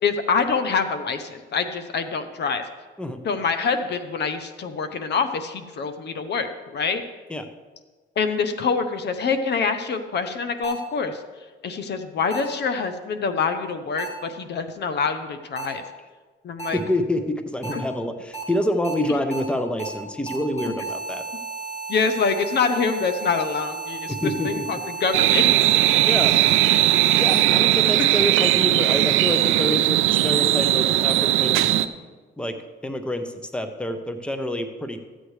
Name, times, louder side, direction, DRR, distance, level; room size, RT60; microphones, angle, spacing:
voice 1, 0.0-2.6 3.2-7.0 8.2-11.2 11.6-15.8 16.4-16.8 17.7-17.8 20.7-20.8 21.9-25.5 28.0-28.1, left 5 dB, 60° left, 9 dB, 0.8 m, -25 dB
sound 1, 10.6-10.7 12.3-12.4 14.0-14.1 15.6-15.7 16.6-16.7 17.6-17.7 18.3-18.4 18.8-18.9 19.3-19.4 19.8-19.9 20.3-27.4, right 4 dB, 30° left, 3.3 m, -33 dB
voice 2, 16.7-21.2 24.1-24.8 26.1-26.3 27.2-31.7 32.4-32.6 32.8-35.0, left 1 dB, 5° left, 7 dB, 0.8 m, -27 dB
sound 2, 25.1-31.9, right 14 dB, 85° right, 0.5 m, -19 dB
14.0 x 8.1 x 3.2 m, 1.3 s
cardioid pair, 90°, 20 cm